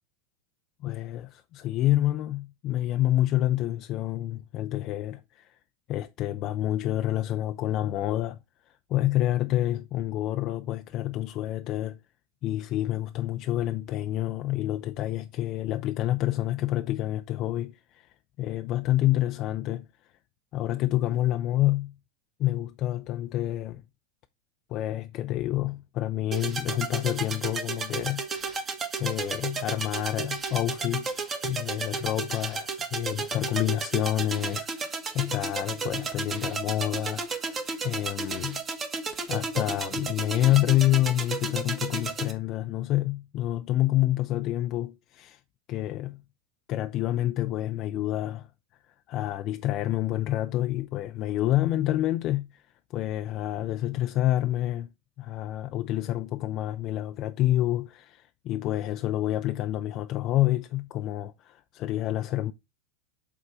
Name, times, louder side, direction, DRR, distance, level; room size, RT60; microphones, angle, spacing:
voice 1, 0.8-5.6 5.9-8.4 8.7-12.0 12.4-19.9 20.5-21.9 22.4-23.8 24.7-28.7 29.0-38.6 39.3-45.4 45.7-46.2 46.7-48.5 48.9-52.7 52.9-54.9 55.2-62.5, left 14 dB, 45° left, 0.5 m, -28 dB
sound 1, 26.3-42.3, right 4 dB, 25° right, 1.4 m, -33 dB
6.7 x 3.6 x 4.7 m
supercardioid pair, 120°, 0 cm